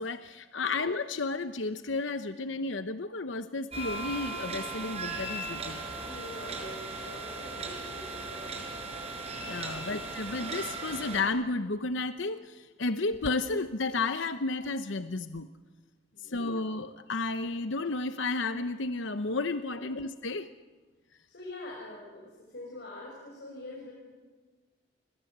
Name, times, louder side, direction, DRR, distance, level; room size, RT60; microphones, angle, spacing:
voice 1, 0.0-5.8 9.4-15.5 16.2-20.5, left 3 dB, 80° left, 9 dB, 0.9 m, -32 dB
sound 1, 3.7-11.2, right 3 dB, 35° right, 5.0 m, -37 dB
voice 2, 6.1-8.7 9.7-9.9 16.1-16.6 19.7-19.9 21.3-23.9, left 2 dB, 60° left, -2 dB, 6.5 m, -45 dB
29.5 x 25.0 x 8.1 m, 1.4 s
head